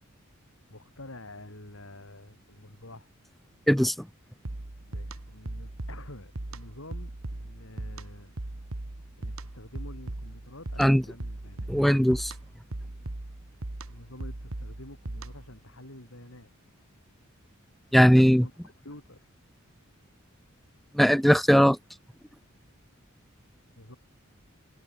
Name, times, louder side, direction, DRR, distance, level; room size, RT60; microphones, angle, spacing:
voice 1, 0.7-3.1 4.9-8.4 9.2-11.7 13.9-16.5 18.3-19.2 23.8-24.0, left 1 dB, 75° left, 5.4 m, -48 dB
sound 1, 4.4-15.6, right 2 dB, 80° right, 1.6 m, -39 dB
voice 2, 11.7-12.3 17.9-18.5 20.9-21.8, equal, ahead, 0.4 m, -19 dB
head